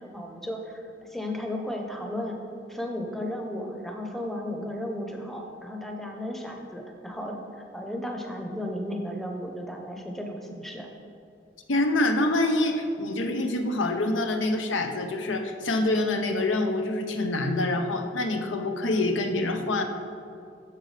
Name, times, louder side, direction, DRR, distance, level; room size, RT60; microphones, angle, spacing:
voice 1, 0.0-2.4 2.7-10.9, left 1 dB, ahead, 1 dB, 0.7 m, -34 dB
voice 2, 11.7-19.8, left 2 dB, 85° left, 5 dB, 0.7 m, -26 dB
10.5 x 6.9 x 3.3 m, 2.5 s
head